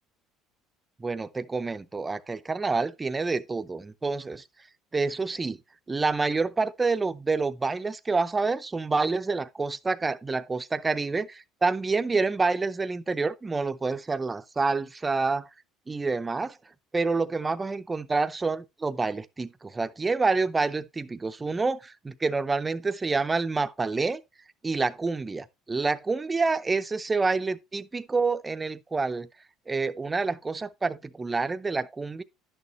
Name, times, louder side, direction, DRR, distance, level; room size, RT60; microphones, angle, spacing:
voice 1, 1.0-4.4 4.9-5.6 5.9-15.5 15.9-16.6 16.9-24.2 24.6-29.3 29.7-32.2, right 4 dB, 20° right, 0.6 m, -28 dB
10.5 x 6.6 x 2.9 m
supercardioid pair, 105°, 0 cm